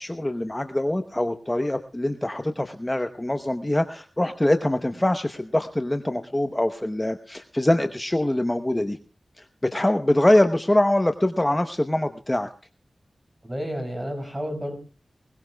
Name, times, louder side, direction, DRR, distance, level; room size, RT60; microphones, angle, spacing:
voice 1, 0.0-9.0 9.4-12.5, left 1 dB, 15° left, 7 dB, 0.8 m, -23 dB
voice 2, 13.4-14.8, equal, 20° right, 4 dB, 5.5 m, -31 dB
21.0 x 20.5 x 2.3 m, 0.36 s
wide cardioid pair, 75°, 0 cm